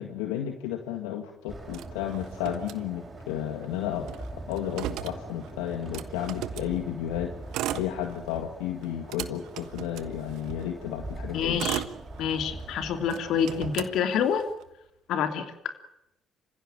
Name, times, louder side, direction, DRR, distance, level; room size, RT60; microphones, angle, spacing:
voice 1, 0.0-11.7, left 10 dB, 90° left, 5 dB, 1.9 m, -33 dB
sound 1, 1.5-14.0, right 2 dB, 30° right, 6.1 m, -43 dB
Motor vehicle (road), 1.7-3.3 3.6-3.7 4.0-6.7 7.4-8.4 8.8-10.6 11.2-12.6 13.1-14.6, right 13 dB, 75° right, 1.3 m, -37 dB
voice 2, 11.3-11.8 12.2-14.4 15.1-15.5, left 7 dB, 70° left, 7 dB, 3.0 m, -27 dB
27.5 x 16.0 x 9.2 m, 0.84 s
supercardioid pair, 60°, 0 cm